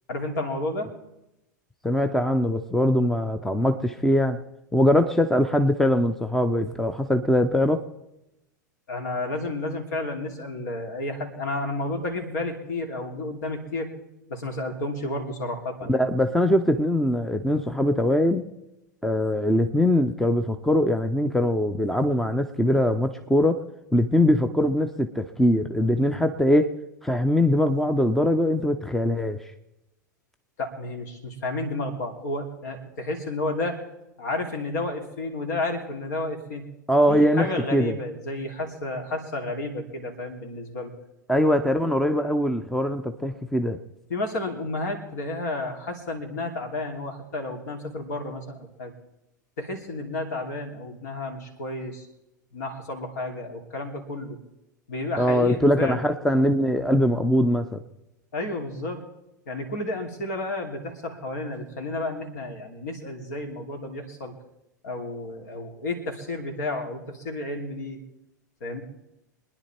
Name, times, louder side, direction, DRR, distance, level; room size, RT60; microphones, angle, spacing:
voice 1, 0.1-0.9 8.9-13.9 14.3-16.1 30.6-33.9 34.2-36.6 37.1-40.9 44.1-48.9 49.6-52.1 52.5-54.4 54.9-56.1 58.3-59.0 59.5-64.3 64.8-68.0 68.6-68.8, left 2 dB, 60° left, 4 dB, 3.0 m, -31 dB
voice 2, 1.8-4.4 4.7-7.8 15.9-18.4 19.0-23.6 23.9-26.7 27.0-29.4 36.9-37.5 37.7-37.9 41.3-43.8 55.2-57.8, left 1 dB, 5° left, 9 dB, 0.7 m, -22 dB
24.0 x 10.5 x 4.4 m, 0.91 s
figure-of-eight pair, 90°, 10 cm